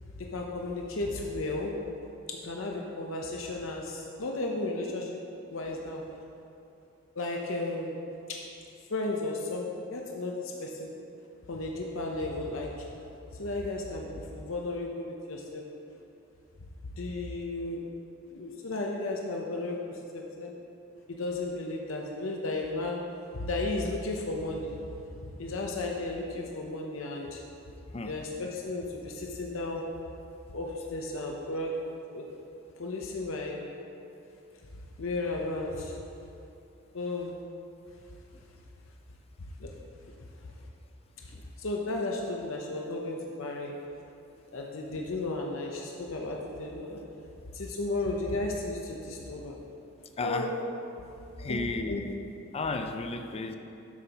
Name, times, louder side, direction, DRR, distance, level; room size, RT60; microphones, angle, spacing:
voice 1, 0.0-1.7 2.3-5.2 5.5-6.0 7.1-8.0 8.3-8.4 8.9-10.9 11.5-12.9 13.3-15.6 17.0-17.8 18.3-20.5 21.1-23.0 23.3-24.8 25.2-27.4 28.0-29.8 30.5-31.7 32.1-32.2 32.8-33.6 35.0-36.0 36.9-37.4 39.6-39.7 40.4-40.5 41.2-43.8 44.5-47.0 47.5-49.6 50.2-50.5 51.4-51.6 51.9-52.0, left 2 dB, 70° left, 0 dB, 0.8 m, -34 dB
voice 2, 50.2-50.5 51.4-52.1 52.5-53.6, left 3 dB, 30° left, 6 dB, 0.4 m, -33 dB
12.5 x 7.5 x 3.0 m, 2.7 s
head